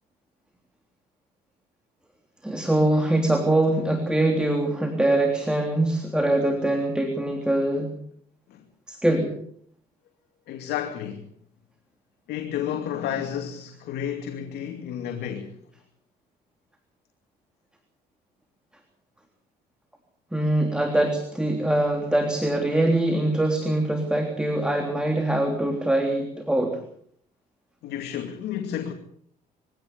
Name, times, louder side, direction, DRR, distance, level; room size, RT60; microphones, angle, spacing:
voice 1, 2.4-7.9 8.9-9.3 20.3-26.8, right 1 dB, 5° right, 3.4 m, -23 dB
voice 2, 10.5-11.3 12.3-15.6 27.8-28.9, left 9 dB, 75° left, 2.7 m, -31 dB
23.0 x 17.0 x 7.0 m
cardioid pair, 110°, 17 cm